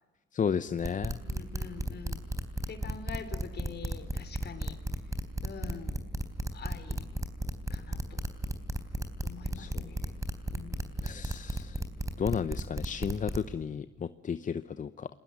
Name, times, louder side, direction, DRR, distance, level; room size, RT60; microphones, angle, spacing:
voice 1, 0.3-1.2 9.6-10.0 11.0-11.8 12.2-15.1, left 7 dB, 40° left, 13 dB, 0.8 m, -33 dB
sound 1, 0.8-13.5, right 1 dB, 15° right, 3.7 m, -33 dB
voice 2, 1.1-2.2 2.7-4.8 5.4-5.9 6.5-7.0 7.7-8.2 9.2-10.0 10.5-10.9, left 6 dB, 55° left, 10 dB, 3.6 m, -45 dB
29.0 x 21.0 x 7.5 m, 1.1 s
cardioid pair, 90°, 20 cm